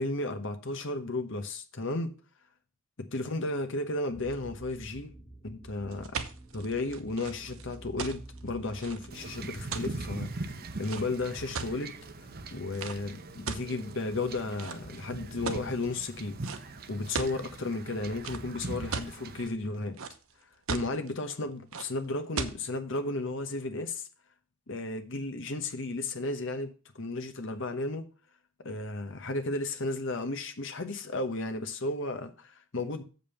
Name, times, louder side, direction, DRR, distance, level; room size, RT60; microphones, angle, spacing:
voice 1, 0.0-2.1 3.0-5.1 5.4-6.1 6.5-12.0 12.5-16.4 16.9-20.0 20.7-24.1 24.7-28.1 28.6-33.0, left 2 dB, 60° left, 1.0 m, -34 dB
sound 1, 4.1-10.9, right 1 dB, 20° left, 2.2 m, -49 dB
sound 2, 5.9-12.0 12.7-13.0 13.5-14.2 14.6-15.0 15.4-15.8 16.4-16.6 16.9-17.4 18.2-19.1 19.6-20.3 20.7-21.1 21.7-21.9 22.4-22.6, right 5 dB, 80° right, 1.0 m, -37 dB
Wind / Ocean / Boat Water vehicle, 9.1-19.5, right 2 dB, 45° right, 0.8 m, -42 dB
7.4 x 5.4 x 7.0 m
head